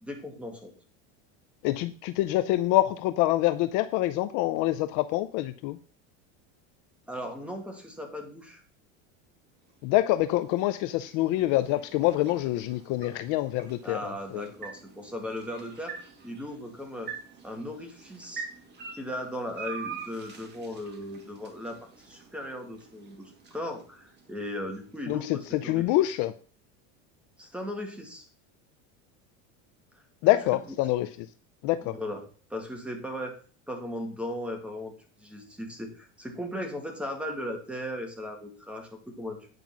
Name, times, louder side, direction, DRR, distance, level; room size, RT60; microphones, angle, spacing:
voice 1, 0.0-0.7 7.1-8.6 13.8-17.1 17.4-18.4 19.0-25.8 27.4-28.3 31.8-32.2 32.5-33.4 33.7-34.9 35.2-39.4, left 1 dB, 5° right, 3 dB, 1.9 m, -37 dB
voice 2, 1.6-5.8 9.8-14.5 25.1-26.3 30.2-31.1 31.6-31.9, left 16 dB, 50° left, 13 dB, 0.5 m, -26 dB
sound 1, 9.5-25.7, right 5 dB, 25° right, 2.1 m, -46 dB
9.4 x 5.3 x 5.9 m, 0.40 s
supercardioid pair, 140°, 38 cm